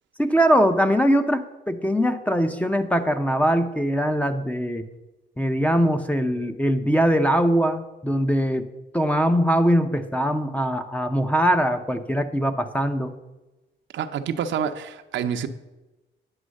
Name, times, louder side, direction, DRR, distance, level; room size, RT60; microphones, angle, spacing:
voice 1, 0.2-4.9 5.4-8.7 8.9-13.1, equal, 5° left, 8 dB, 0.7 m, -22 dB
voice 2, 13.9-15.5, right 8 dB, 70° right, 7 dB, 0.7 m, -27 dB
9.8 x 6.2 x 6.4 m, 1.1 s
cardioid pair, 90°, 20 cm